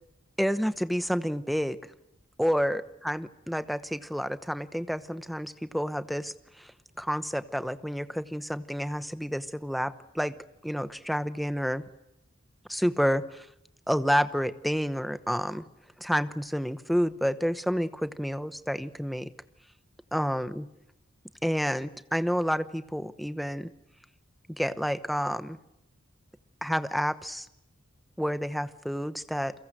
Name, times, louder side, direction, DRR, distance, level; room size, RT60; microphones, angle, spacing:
voice 1, 0.4-1.8 2.4-6.7 7.0-10.3 10.6-11.8 12.7-13.5 13.9-15.6 16.0-19.3 20.1-20.7 21.4-23.7 24.5-25.6 26.6-27.5 28.2-29.5, equal, ahead, 12 dB, 0.9 m, -29 dB
30.0 x 23.0 x 7.7 m, 0.81 s
head